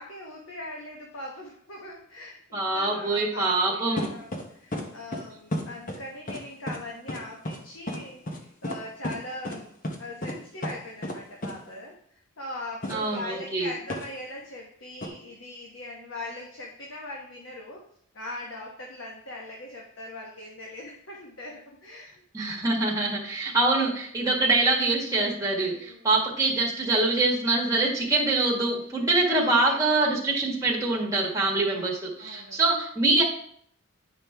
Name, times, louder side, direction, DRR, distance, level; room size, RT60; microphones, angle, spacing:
voice 1, 0.0-9.7 10.0-17.8 18.1-22.2 25.6-26.1 29.3-29.8 31.7-31.9 32.2-32.6, left 1 dB, 60° left, -2 dB, 1.1 m, -41 dB
voice 2, 2.5-4.1 12.9-13.7 22.3-33.2, right 2 dB, 15° right, -3 dB, 1.5 m, -24 dB
sound 1, 4.0-4.4 4.7-4.9 5.1-5.2 5.5-6.0 6.3-6.4 6.7-6.8 7.1-7.2 7.4-7.6 7.9-8.0 8.3-8.4 8.6-8.8 9.0-9.2 9.4-9.6 9.8-10.0 10.2-10.4 10.6-10.8 11.0-11.2 11.4-11.5 12.8-13.0 13.9-14.1 15.0-15.1, left 1 dB, 35° left, 0.9 m, -31 dB
9.1 x 5.2 x 3.4 m, 0.65 s
head